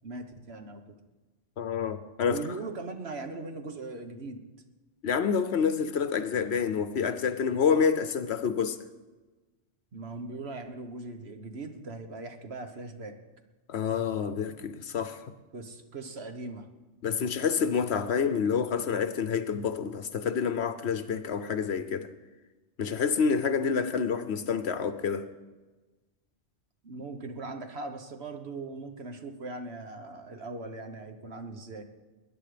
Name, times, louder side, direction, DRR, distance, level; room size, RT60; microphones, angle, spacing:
voice 1, 0.0-1.0 2.3-4.4 9.9-13.2 15.5-16.7 26.8-31.8, right 3 dB, 55° right, 1.4 m, -40 dB
voice 2, 1.6-2.4 5.0-8.8 13.7-15.2 17.0-22.1 22.8-25.2, left 6 dB, 60° left, 1.0 m, -28 dB
21.0 x 10.0 x 5.0 m
omnidirectional pair, 1.3 m